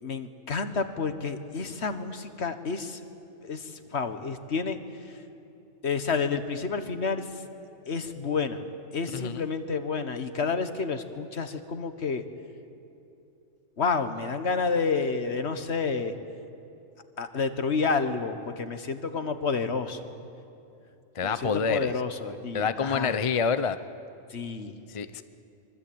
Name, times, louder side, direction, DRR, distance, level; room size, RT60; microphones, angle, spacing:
voice 1, 0.0-3.0 3.4-4.8 5.0-5.2 5.8-7.4 7.9-8.6 8.9-12.2 13.8-16.1 17.2-20.0 21.2-23.2 24.3-24.8, left 4 dB, 55° left, 9 dB, 1.6 m, -30 dB
voice 2, 9.1-9.4 21.1-21.9 22.5-23.8 24.9-25.2, left 5 dB, 35° left, 12 dB, 0.6 m, -27 dB
24.5 x 24.0 x 8.7 m, 2.8 s
omnidirectional pair, 1.4 m